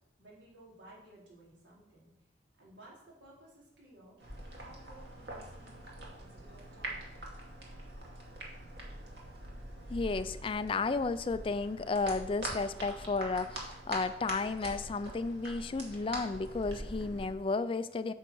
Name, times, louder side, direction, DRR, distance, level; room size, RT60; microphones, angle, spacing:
voice 1, 0.2-2.1 2.6-4.2 4.5-7.2, right 1 dB, 85° right, -5 dB, 4.0 m, -57 dB
sound 1, 4.2-17.3, right 1 dB, 70° right, 2.2 m, -44 dB
voice 2, 9.9-18.1, left 3 dB, 30° left, 13 dB, 0.3 m, -33 dB
9.1 x 5.6 x 6.2 m, 0.87 s
head